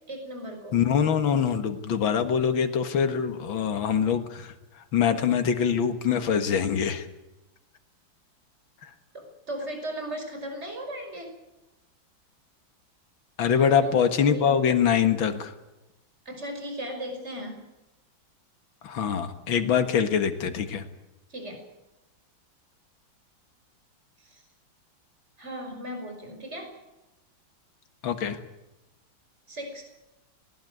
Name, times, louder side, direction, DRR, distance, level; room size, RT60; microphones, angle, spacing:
voice 1, 0.1-0.8 9.1-11.3 13.5-14.0 14.3-14.6 16.3-17.6 21.3-21.6 24.2-24.4 25.4-26.7 29.5-29.8, right 1 dB, 35° right, 4 dB, 5.8 m, -37 dB
voice 2, 0.7-7.1 8.8-8.9 13.4-15.5 18.8-20.9 28.0-28.4, left 7 dB, 75° left, 8 dB, 2.4 m, -24 dB
20.0 x 19.0 x 9.5 m, 0.97 s
omnidirectional pair, 2.1 m